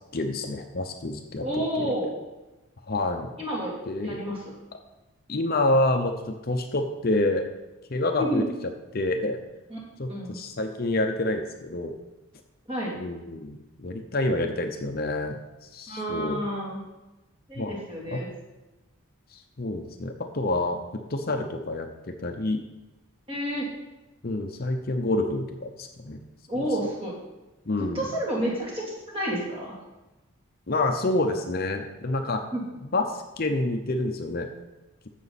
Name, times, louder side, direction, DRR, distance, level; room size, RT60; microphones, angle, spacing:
voice 1, 0.1-1.4 1.8-1.9 2.9-3.3 3.9-4.2 5.3-7.5 7.9-8.4 8.9-9.4 10.0-11.9 13.0-15.4 15.6-16.4 17.6-17.8 18.1-18.2 19.3-22.6 24.2-26.2 27.7-28.0 30.7-32.4 32.9-34.5, left 2 dB, 45° left, 5 dB, 0.8 m, -28 dB
voice 2, 1.4-2.1 3.4-4.5 8.2-8.5 9.7-9.8 10.1-10.4 12.7-13.0 15.9-16.8 17.5-18.3 23.3-23.7 26.5-27.2 27.8-28.8 29.1-29.8 32.4-32.6, equal, 25° right, -4 dB, 3.1 m, -30 dB
15.0 x 6.3 x 4.2 m, 1.1 s
head